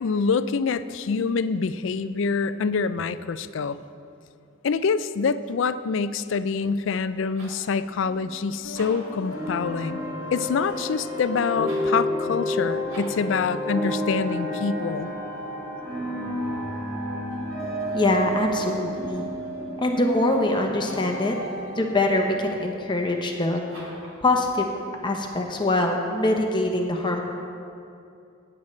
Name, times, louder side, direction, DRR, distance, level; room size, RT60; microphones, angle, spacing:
voice 1, 0.0-3.8 4.6-10.0 10.3-15.1, left 5 dB, 65° left, 13 dB, 0.4 m, -26 dB
sound 1, 7.2-7.7 8.6-9.2 11.6-12.0 12.9-13.3 18.3-18.9 20.7-21.2 23.7-24.2, right 1 dB, 90° right, 2.8 m, -44 dB
sound 2, 8.0-22.0, left 2 dB, 85° left, 1.0 m, -40 dB
sound 3, 9.3-20.5, equal, 20° right, 1.5 m, -30 dB
voice 2, 17.9-19.3 19.8-21.4 21.8-23.9 24.2-24.7 25.0-27.3, left 2 dB, 25° left, 2 dB, 0.9 m, -24 dB
17.5 x 8.9 x 3.2 m, 2.5 s
head